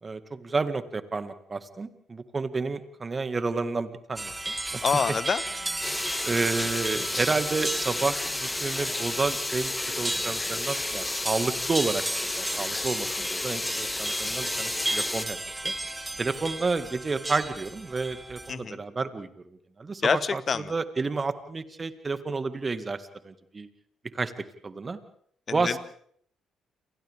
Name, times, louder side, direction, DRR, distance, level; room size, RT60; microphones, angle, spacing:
voice 1, 0.0-4.3 4.7-4.8 6.2-15.7 16.2-19.3 19.8-23.7 24.1-24.3 24.6-25.0 25.5-25.8, right 4 dB, 35° right, 10 dB, 2.0 m, -30 dB
sound 1, 4.2-18.6, right 2 dB, 20° right, 2.0 m, -35 dB
voice 2, 4.8-5.4 18.5-18.8 20.0-20.7 25.5-25.8, left 6 dB, 45° left, 15 dB, 1.3 m, -26 dB
sound 2, 5.8-15.3, left 2 dB, 20° left, 1.3 m, -31 dB
30.0 x 27.0 x 3.7 m, 0.65 s
hypercardioid pair, 45°, 0 cm